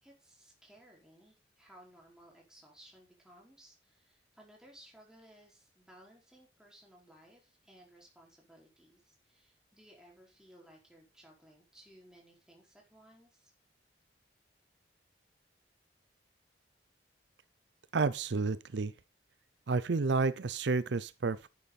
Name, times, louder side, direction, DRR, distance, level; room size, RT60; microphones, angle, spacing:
voice 1, 0.0-13.5, right 1 dB, 5° right, 5.1 m, -59 dB
voice 2, 17.9-18.9 19.7-21.5, right 4 dB, 70° right, 0.6 m, -30 dB
10.5 x 9.9 x 4.2 m
head